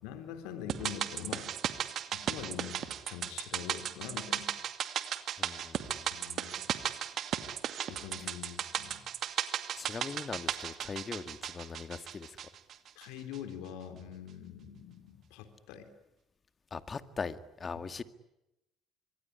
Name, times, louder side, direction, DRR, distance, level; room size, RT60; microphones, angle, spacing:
voice 1, 0.0-1.5 2.1-4.5 6.1-6.7 7.9-9.0 13.0-15.9, left 9 dB, 75° left, 8 dB, 3.9 m, -44 dB
sound 1, 0.7-13.1 13.3-13.4, right 9 dB, 55° right, 2.2 m, -36 dB
voice 2, 5.4-6.1 9.8-12.4 16.7-18.0, left 5 dB, 35° left, 11 dB, 2.1 m, -40 dB
25.5 x 23.5 x 9.9 m, 0.90 s
hypercardioid pair, 65°, 0 cm